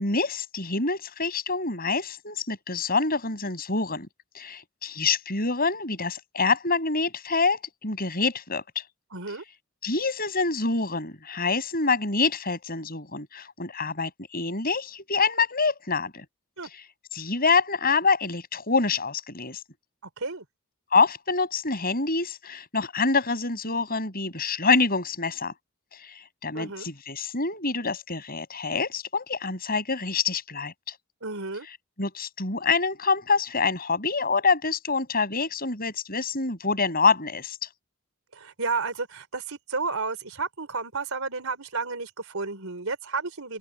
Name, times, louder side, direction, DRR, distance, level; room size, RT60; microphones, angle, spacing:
voice 1, 0.0-4.1 4.3-8.6 9.8-16.2 16.7-16.8 17.1-19.6 20.9-25.5 25.9-30.9 32.0-37.6, left 4 dB, 45° left, 6.8 m, -26 dB
voice 2, 9.1-9.4 16.6-16.7 20.2-20.4 26.5-26.9 31.2-31.7 38.3-43.6, right 4 dB, 70° right, 4.3 m, -32 dB
open air
head